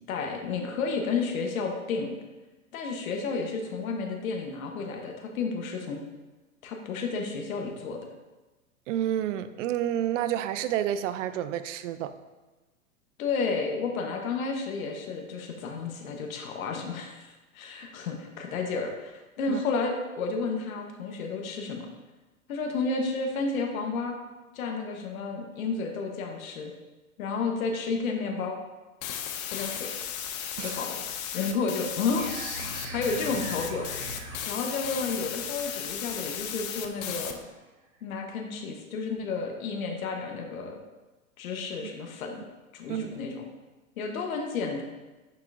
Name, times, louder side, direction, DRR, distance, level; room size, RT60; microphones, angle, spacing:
voice 1, 0.1-2.2 2.7-6.0 6.6-8.0 13.2-21.9 22.5-24.1 24.5-26.7 27.2-28.6 29.5-29.9 30.6-31.0 31.3-32.3 32.9-33.9 34.5-37.4 38.0-40.8 41.4-42.4 42.7-43.5 44.0-44.8, left 4 dB, 80° left, 2 dB, 1.1 m, -31 dB
voice 2, 8.9-12.1 19.5-19.6 30.6-30.8 42.9-43.2, right 11 dB, 60° right, 11 dB, 0.5 m, -29 dB
sound 1, 29.0-37.3, left 9 dB, 30° left, 0.4 m, -36 dB
sound 2, 32.2-37.5, right 1 dB, 90° right, 1.6 m, -42 dB
6.5 x 5.7 x 2.5 m, 1.2 s
hypercardioid pair, 130°, 42 cm